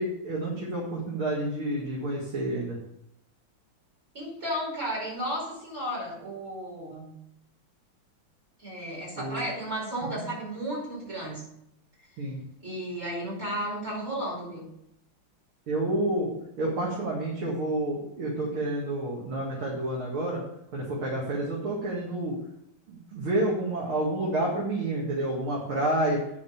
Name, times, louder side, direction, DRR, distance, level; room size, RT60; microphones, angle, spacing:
voice 1, 0.0-2.8 9.2-9.5 10.1-10.3 12.2-12.4 15.7-20.4 20.7-22.4 22.9-26.2, right 1 dB, 90° right, -4 dB, 3.1 m, -29 dB
voice 2, 4.1-7.2 8.6-11.4 12.6-14.7, equal, 30° right, -5 dB, 5.5 m, -33 dB
9.2 x 6.6 x 7.3 m, 0.76 s
omnidirectional pair, 2.3 m